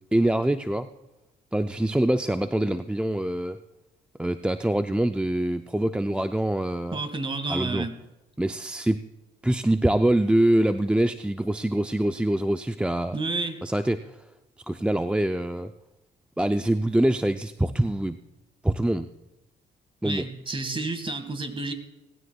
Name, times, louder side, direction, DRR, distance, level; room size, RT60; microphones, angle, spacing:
voice 1, 0.1-0.9 1.5-3.6 4.2-7.0 7.5-7.9 8.4-9.0 9.4-13.2 13.6-14.2 14.7-15.7 16.4-18.2 18.6-19.1 20.0-20.3, right 1 dB, 5° right, 9 dB, 0.4 m, -24 dB
voice 2, 6.9-8.0 13.1-13.7 20.0-21.7, right 3 dB, 25° right, 9 dB, 1.8 m, -30 dB
19.0 x 16.0 x 2.3 m, 0.98 s
cardioid pair, 90°, 20 cm